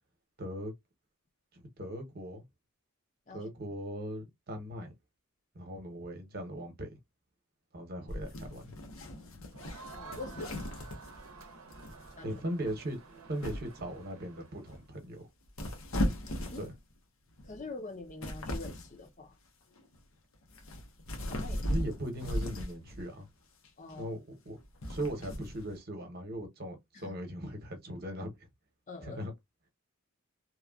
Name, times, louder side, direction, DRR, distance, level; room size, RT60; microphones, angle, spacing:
voice 1, 0.4-0.7 1.5-2.4 3.3-4.9 5.5-6.9 7.7-8.8 12.2-13.0 13.3-15.2 16.6-16.7 21.7-23.3 23.9-24.6 24.9-28.3 29.0-29.3, right 1 dB, 45° right, 0.9 m, -39 dB
sound 1, 8.1-11.4 11.7-12.1 12.6-12.9 13.4-13.9 14.7-15.0 15.5-16.9 17.4-17.6 18.0-19.0 19.8-20.0 20.4-23.0 23.6-23.9 24.6-25.7, equal, 75° left, 0.8 m, -37 dB
Crowd, 9.5-14.8, right 4 dB, 80° right, 0.6 m, -51 dB
voice 2, 9.9-10.6 12.2-12.4 16.5-16.6 17.4-19.3 21.3-21.6 23.8-24.1 26.9-27.2 28.9-29.2, left 3 dB, 35° left, 0.6 m, -45 dB
2.9 x 2.3 x 2.3 m
head